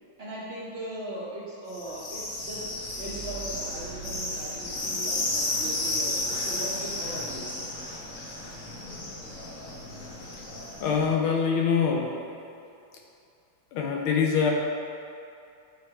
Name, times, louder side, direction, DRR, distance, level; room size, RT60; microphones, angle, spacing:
voice 1, 0.2-7.6, right 1 dB, 35° right, -8 dB, 1.3 m, -39 dB
sound 1, 1.7-11.1, left 1 dB, 45° left, 1.2 m, -33 dB
voice 2, 10.8-12.1 13.7-14.5, left 6 dB, 85° left, 0 dB, 1.6 m, -24 dB
8.6 x 3.4 x 4.4 m, 2.5 s
omnidirectional pair, 2.2 m